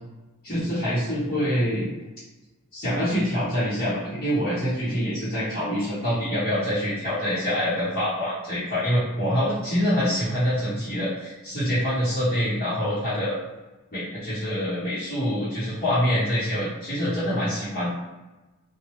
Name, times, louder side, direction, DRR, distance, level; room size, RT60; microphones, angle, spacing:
voice 1, 0.4-1.9 2.7-13.4 13.9-17.9, equal, 40° left, -14 dB, 1.0 m, -25 dB
3.1 x 2.3 x 3.1 m, 1.1 s
head